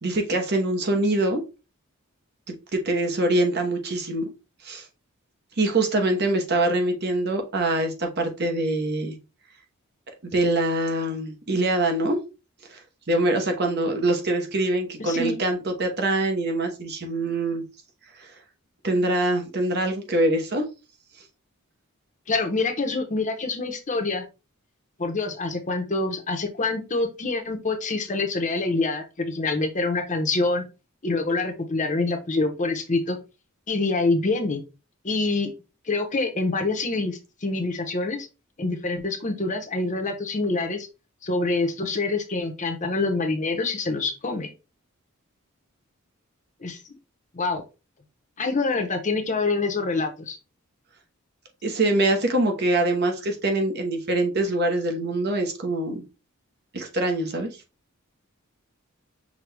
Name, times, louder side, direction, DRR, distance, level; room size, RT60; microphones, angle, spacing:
voice 1, 0.0-1.4 2.7-4.3 4.6-4.8 5.6-9.2 10.2-12.2 12.7-12.8 13.1-17.6 18.8-20.6 51.6-56.0 56.7-57.5, right 2 dB, 50° right, 4 dB, 0.9 m, -24 dB
voice 2, 15.0-15.4 22.3-24.2 25.0-30.6 31.0-33.2 33.7-34.6 35.0-35.5 35.9-38.3 38.6-40.9 41.2-44.5 46.6-46.8 47.3-47.6 48.4-50.4, left 3 dB, 35° left, 6 dB, 0.8 m, -26 dB
6.0 x 2.3 x 3.3 m, 0.29 s
head